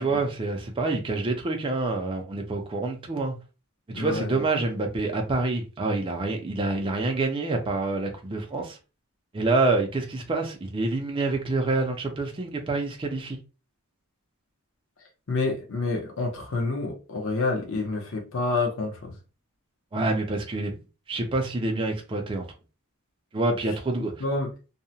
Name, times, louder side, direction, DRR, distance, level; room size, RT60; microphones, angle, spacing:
voice 1, 0.0-3.3 3.9-8.8 9.3-13.4 19.9-20.7 21.1-22.4 23.3-24.1, right 3 dB, 25° right, 0.4 m, -27 dB
voice 2, 3.9-4.4 15.3-19.1 24.2-24.5, left 3 dB, 60° left, 0.7 m, -28 dB
2.7 x 2.1 x 2.6 m
head